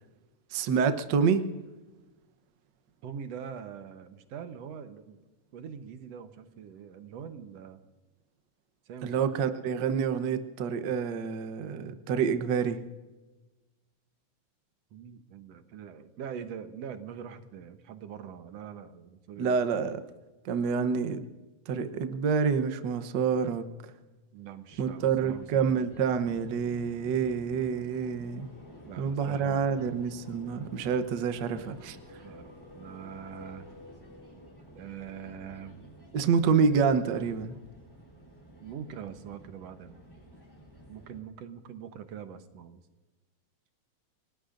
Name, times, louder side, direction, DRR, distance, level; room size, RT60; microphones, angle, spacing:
voice 1, 0.5-1.4 9.0-12.8 19.4-20.0 20.4-21.2 21.7-23.9 24.8-28.5 29.0-32.0 36.1-37.6, right 6 dB, 90° right, 9 dB, 0.9 m, -27 dB
voice 2, 3.0-5.2 5.5-7.8 8.9-9.3 14.9-19.6 24.3-25.6 28.9-29.7 32.2-33.7 34.7-35.8 38.6-40.0 40.9-42.8, right 8 dB, 65° right, 8 dB, 2.0 m, -43 dB
sound 1, 24.7-41.2, equal, 5° left, 3.5 m, -51 dB
29.5 x 18.5 x 2.6 m, 1.2 s
omnidirectional pair, 3.4 m